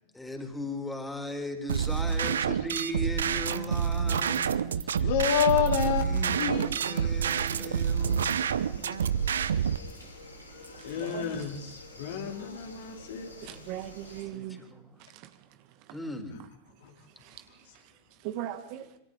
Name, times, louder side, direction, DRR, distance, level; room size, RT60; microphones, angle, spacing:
voice 1, 0.1-5.1 5.8-9.0 13.5-13.6 14.3-15.0 15.9-16.4, left 1 dB, 5° left, 4.0 m, -38 dB
sound 1, 1.7-9.8, right 8 dB, 65° right, 0.8 m, -28 dB
voice 2, 5.0-6.6 10.8-13.8 16.8-16.9, left 9 dB, 55° left, 3.1 m, -30 dB
sound 2, 6.2-14.2, left 1 dB, 90° left, 6.3 m, -48 dB
voice 3, 10.7-11.5 13.4-14.6 15.1-15.3 17.2-17.4 18.2-18.9, right 12 dB, 45° right, 1.7 m, -39 dB
26.5 x 26.5 x 3.9 m
figure-of-eight pair, 90°, 0 cm